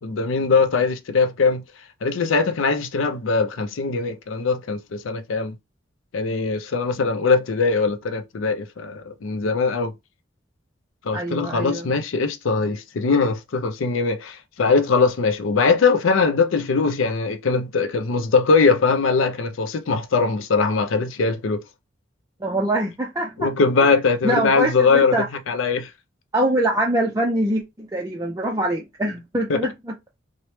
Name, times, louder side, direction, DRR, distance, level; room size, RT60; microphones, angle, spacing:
voice 1, 0.0-1.6 2.0-5.6 6.1-9.9 11.0-21.6 23.4-25.1 25.5-25.9 29.5-29.6, left 4 dB, 80° left, 0.5 m, -21 dB
voice 2, 11.1-11.9 22.4-23.5 24.2-25.3 26.3-29.9, right 1 dB, 15° right, 0.4 m, -24 dB
3.0 x 2.1 x 3.1 m
head